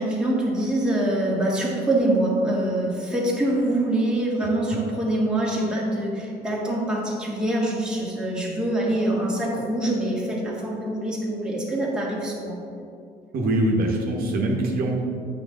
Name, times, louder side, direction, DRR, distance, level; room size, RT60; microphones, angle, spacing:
voice 1, 0.0-12.6, right 1 dB, 5° right, -5 dB, 1.7 m, -24 dB
voice 2, 13.3-15.0, right 1 dB, 60° right, 0 dB, 1.1 m, -23 dB
8.3 x 5.8 x 3.7 m, 2.5 s
cardioid pair, 110°, 17 cm